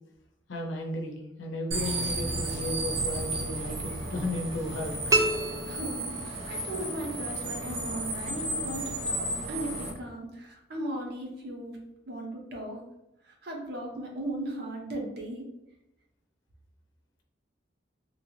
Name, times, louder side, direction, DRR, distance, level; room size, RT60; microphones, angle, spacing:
voice 1, 0.5-5.2, left 1 dB, 90° left, 1 dB, 0.6 m, -34 dB
sound 1, 1.7-9.9, right 2 dB, 90° right, 0.9 m, -33 dB
sound 2, 5.1-6.7, right 1 dB, 20° right, 0.3 m, -28 dB
voice 2, 5.7-11.8 12.1-12.8 13.2-15.5, right 1 dB, 60° right, 0 dB, 0.8 m, -37 dB
2.9 x 2.6 x 3.0 m, 0.88 s
head